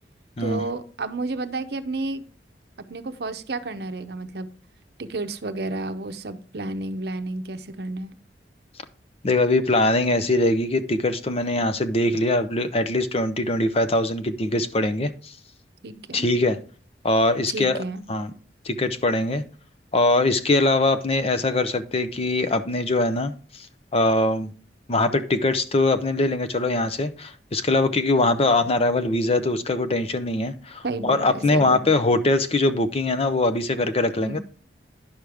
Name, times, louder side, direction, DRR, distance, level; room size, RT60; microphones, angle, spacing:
voice 1, 0.4-2.2 2.9-4.5 5.0-8.1 15.8-16.3 17.5-18.0 30.8-32.3 34.2-34.4, right 2 dB, 60° right, 0.7 m, -31 dB
voice 2, 9.2-15.3 16.1-16.6 17.0-17.8 18.1-18.3 18.6-19.4 19.9-23.7 23.9-24.5 24.9-34.4, left 2 dB, 35° left, 0.6 m, -22 dB
10.0 x 6.3 x 3.5 m
head